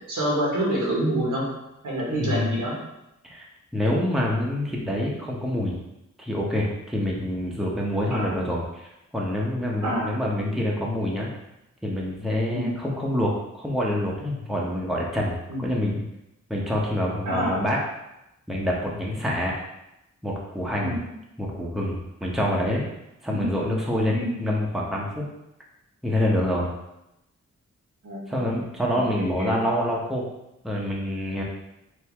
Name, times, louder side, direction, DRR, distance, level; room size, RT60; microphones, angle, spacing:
voice 1, 0.1-1.5 1.8-2.8 8.1-8.3 9.8-10.1 12.5-12.7 15.5-15.6 17.2-17.6 20.8-21.0 23.3-23.6 24.1-24.3 28.0-28.4 28.9-29.6, right 1 dB, 85° right, -4 dB, 1.5 m, -27 dB
voice 2, 2.1-2.6 3.2-3.4 3.7-5.8 6.2-11.3 11.8-16.0 16.5-17.8 18.5-19.5 20.2-21.0 21.4-22.8 23.2-25.2 26.0-26.7 28.3-30.2 30.6-31.4, left 1 dB, ahead, -3 dB, 0.8 m, -26 dB
4.5 x 2.7 x 3.4 m, 0.89 s
wide cardioid pair, 95°, 31 cm